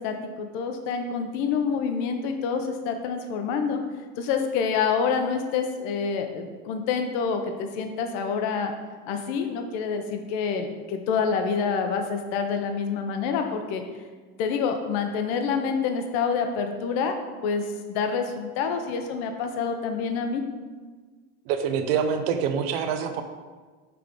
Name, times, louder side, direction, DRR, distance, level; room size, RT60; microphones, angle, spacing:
voice 1, 0.0-3.8 4.2-8.7 9.1-13.8 14.4-17.1 17.4-20.4, left 6 dB, 45° left, 5 dB, 0.6 m, -27 dB
voice 2, 21.5-23.2, right 7 dB, 65° right, 7 dB, 0.7 m, -25 dB
6.0 x 3.4 x 5.0 m, 1.4 s
supercardioid pair, 170°, 32 cm